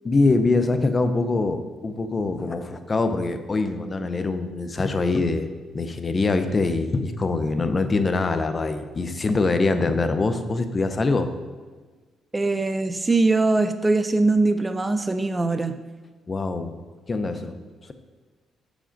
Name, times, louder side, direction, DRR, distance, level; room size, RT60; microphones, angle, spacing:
voice 1, 0.0-5.5 5.7-11.3 16.3-16.7 17.1-17.6, left 3 dB, 30° left, 9 dB, 0.6 m, -23 dB
voice 2, 12.3-15.7, right 3 dB, 20° right, 9 dB, 0.4 m, -21 dB
7.0 x 5.0 x 5.1 m, 1.4 s
cardioid pair, 90°, 0 cm